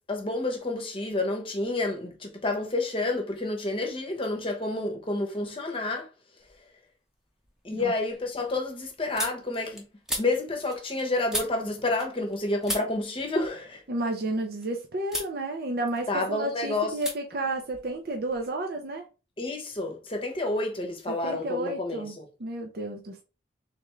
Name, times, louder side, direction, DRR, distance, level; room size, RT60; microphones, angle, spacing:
voice 1, 0.1-6.1 7.6-9.8 10.2-13.8 16.1-16.9 19.4-22.3, left 2 dB, 25° left, 0.9 m, -29 dB
sound 1, 6.4-6.9 7.3-12.4 12.6-14.7 15.1-15.4 15.7-16.5 17.0-17.2 17.4-18.5, left 1 dB, 5° right, 0.8 m, -38 dB
voice 2, 13.9-19.1 21.1-23.2, right 2 dB, 50° right, 0.6 m, -32 dB
3.6 x 3.4 x 3.2 m
head